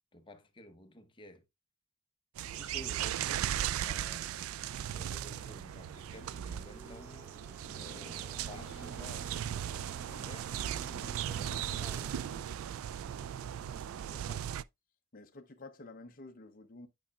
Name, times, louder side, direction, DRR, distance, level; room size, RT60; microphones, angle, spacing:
voice 1, 0.1-1.4 2.5-4.4 4.9-7.1 7.7-10.7 11.2-12.1 13.3-14.4, left 1 dB, 25° left, 1.0 m, -53 dB
sound 1, 2.4-14.6, right 10 dB, 80° right, 0.3 m, -37 dB
sound 2, 2.8-14.6, equal, 10° right, 0.9 m, -54 dB
voice 2, 11.0-11.3 15.1-16.9, left 2 dB, 45° left, 0.7 m, -51 dB
9.0 x 5.6 x 2.3 m
head